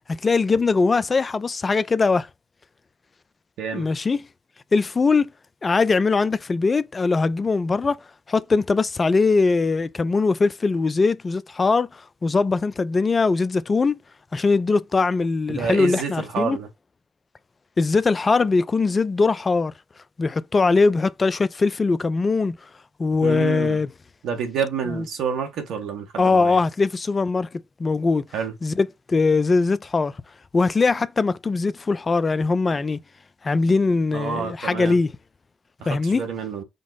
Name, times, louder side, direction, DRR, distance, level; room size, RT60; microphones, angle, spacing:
voice 1, 0.1-2.3 3.7-4.3 4.7-5.3 5.6-8.0 8.3-11.9 12.2-14.0 14.3-16.6 17.8-19.7 20.2-22.6 23.0-23.9 24.9-25.1 26.2-28.2 28.6-30.1 30.5-33.0 33.4-35.1 35.9-36.3, left 4 dB, 35° left, 0.4 m, -21 dB
voice 2, 3.6-3.9 15.5-16.7 23.2-23.8 24.2-26.6 28.3-28.5 34.1-35.0 35.8-36.6, right 6 dB, 75° right, 1.1 m, -28 dB
5.2 x 2.0 x 3.8 m
hypercardioid pair, 50°, 0 cm